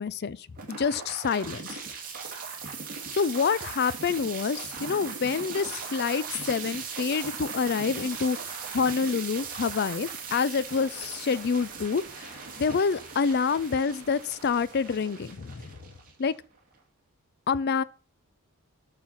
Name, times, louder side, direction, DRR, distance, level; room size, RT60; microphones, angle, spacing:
voice 1, 0.0-1.8 3.1-15.8 16.2-16.3 17.5-17.8, left 5 dB, 45° left, 0.4 m, -27 dB
sound 1, 0.6-16.6, right 5 dB, 40° right, 2.6 m, -39 dB
8.7 x 5.8 x 5.7 m
head